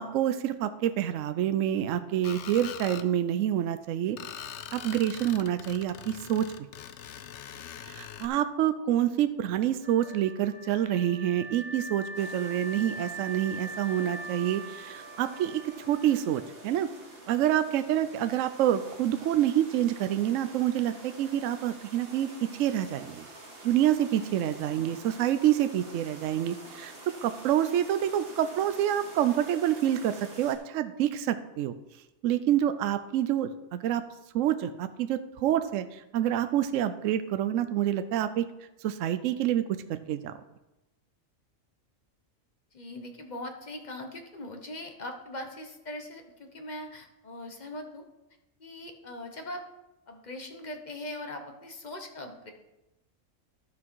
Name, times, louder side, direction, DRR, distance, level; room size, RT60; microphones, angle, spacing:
voice 1, 0.0-4.2 4.7-6.5 7.9-16.9 17.3-23.3 23.6-26.9 27.2-31.7 32.2-34.0 34.3-38.4 38.8-40.3, right 11 dB, 75° right, 11 dB, 0.9 m, -27 dB
Screech, 2.2-3.1 4.2-8.3, left 9 dB, 65° left, 0.9 m, -42 dB
Wind instrument woodwind instrument, 9.8-16.8, right 2 dB, 10° right, 1.9 m, -42 dB
sound 1, 12.1-30.5, right 2 dB, 45° right, 1.8 m, -48 dB
voice 2, 42.7-48.1 48.6-49.6 50.1-52.5, left 1 dB, 35° left, 4 dB, 1.2 m, -41 dB
12.5 x 6.0 x 4.6 m, 0.96 s
omnidirectional pair, 1.4 m